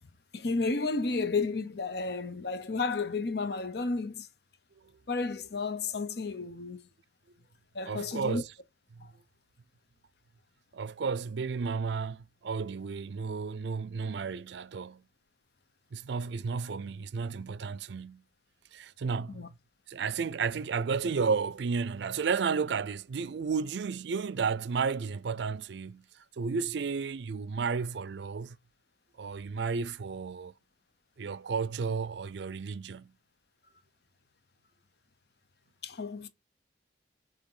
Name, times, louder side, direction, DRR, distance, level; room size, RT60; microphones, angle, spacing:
voice 1, 0.3-4.3 5.1-6.9 7.7-8.4 9.0-9.1 19.3-19.5 35.8-36.3, left 3 dB, 55° left, 0.7 m, -32 dB
voice 2, 7.9-8.5 8.9-9.1 10.7-15.0 15.9-18.2 18.7-19.5 19.9-26.0 26.4-28.6 29.2-30.5 31.2-33.1, right 5 dB, 65° right, 0.4 m, -32 dB
8.0 x 3.4 x 3.8 m
head